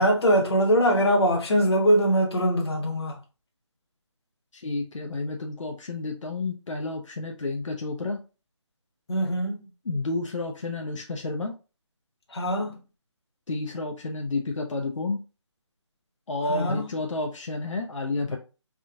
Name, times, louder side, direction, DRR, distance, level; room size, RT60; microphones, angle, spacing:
voice 1, 0.0-3.2 9.1-9.7 12.3-12.8 16.5-16.9, equal, 55° left, 1.1 m, -22 dB
voice 2, 4.5-8.2 9.8-11.5 13.5-15.2 16.3-18.4, left 3 dB, 85° left, 0.6 m, -30 dB
3.5 x 2.6 x 2.3 m
figure-of-eight pair, 175°, 16 cm